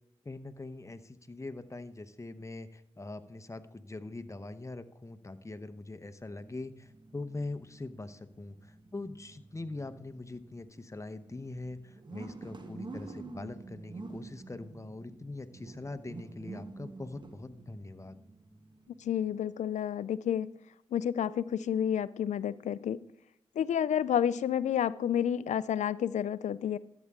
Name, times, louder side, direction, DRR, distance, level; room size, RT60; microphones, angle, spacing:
voice 1, 0.2-18.2, left 2 dB, 25° left, 10 dB, 0.9 m, -42 dB
sound 1, 6.2-19.5, right 3 dB, 40° right, 1.3 m, -49 dB
voice 2, 19.0-20.6 20.9-23.1 23.6-26.8, left 9 dB, 80° left, 18 dB, 0.4 m, -30 dB
13.5 x 8.3 x 3.7 m, 0.80 s
cardioid pair, 45°, 12 cm